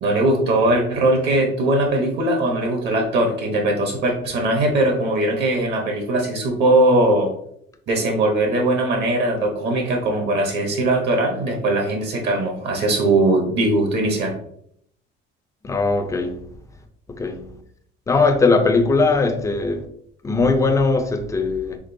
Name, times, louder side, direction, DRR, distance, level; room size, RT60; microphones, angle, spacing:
voice 1, 0.0-7.3 7.9-14.3, right 1 dB, 55° right, 1.0 m, -20 dB
voice 2, 15.6-16.4 17.2-17.4 18.1-19.9 20.2-21.8, left 3 dB, 15° left, 0.5 m, -19 dB
5.1 x 3.6 x 2.6 m
cardioid pair, 155°, 21 cm